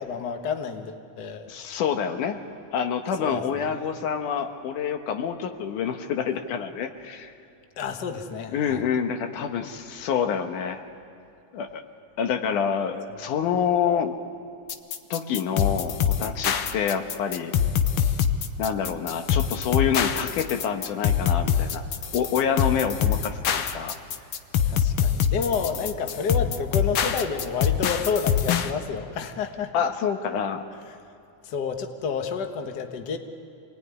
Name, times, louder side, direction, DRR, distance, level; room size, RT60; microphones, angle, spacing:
voice 1, 0.0-1.4 3.2-3.9 7.8-8.8 24.7-29.7 31.4-33.2, left 6 dB, 45° left, 5 dB, 1.6 m, -30 dB
voice 2, 1.5-2.4 2.7-7.3 8.5-10.8 11.5-11.8 12.2-14.2 15.1-17.5 18.6-21.8 22.1-24.0 29.7-30.6, left 7 dB, 90° left, 6 dB, 2.8 m, -27 dB
sound 1, 14.7-28.7, left 8 dB, 65° left, 1.5 m, -24 dB
27.0 x 19.5 x 9.7 m, 2.7 s
omnidirectional pair, 3.5 m